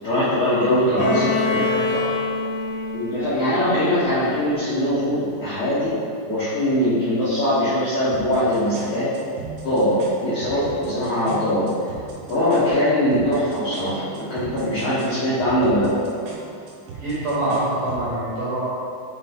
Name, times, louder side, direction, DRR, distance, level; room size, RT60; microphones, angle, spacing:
voice 1, 0.0-1.3 2.9-5.9 6.2-9.1 9.6-11.7 12.3-15.9, left 1 dB, 70° left, -14 dB, 1.8 m, -21 dB
voice 2, 0.7-2.1 16.9-18.6, right 1 dB, 65° right, -10 dB, 2.2 m, -25 dB
Bowed string instrument, 1.0-4.8, left 4 dB, 90° left, 3.0 m, -27 dB
sound 1, 8.1-18.1, right 3 dB, 85° right, 2.0 m, -39 dB
6.6 x 3.9 x 3.6 m, 2.4 s
omnidirectional pair, 5.3 m